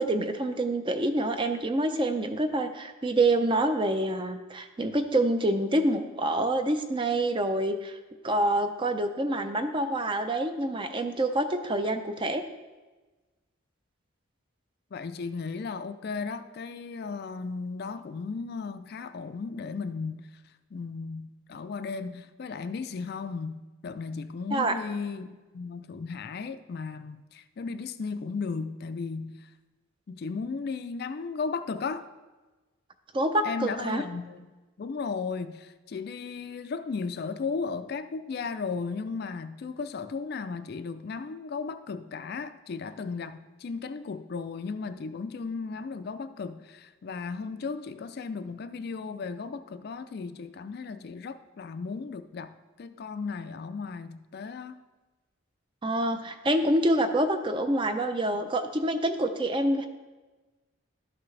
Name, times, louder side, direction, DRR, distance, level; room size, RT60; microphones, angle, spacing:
voice 1, 0.0-8.0 8.2-12.4 24.5-24.8 33.1-34.0 55.8-59.9, right 1 dB, 25° right, 0.5 m, -27 dB
voice 2, 14.9-20.3 20.7-29.5 30.1-32.1 33.4-34.5 34.8-54.8, left 4 dB, 50° left, 0.3 m, -35 dB
12.0 x 5.9 x 3.3 m
head